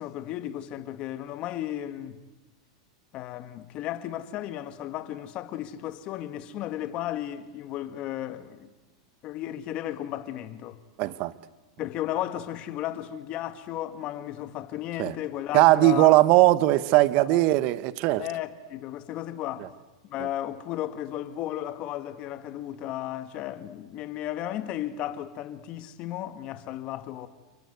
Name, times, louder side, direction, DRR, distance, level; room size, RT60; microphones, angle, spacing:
voice 1, 0.0-2.2 3.1-8.7 9.2-10.8 11.8-16.2 17.3-17.4 18.2-19.7 20.1-27.3, left 12 dB, 40° left, 2.0 m, -34 dB
voice 2, 11.0-11.3 15.0-15.1 15.5-18.3, right 16 dB, 50° right, 1.2 m, -19 dB
29.0 x 24.0 x 8.2 m
supercardioid pair, 130°, 3 cm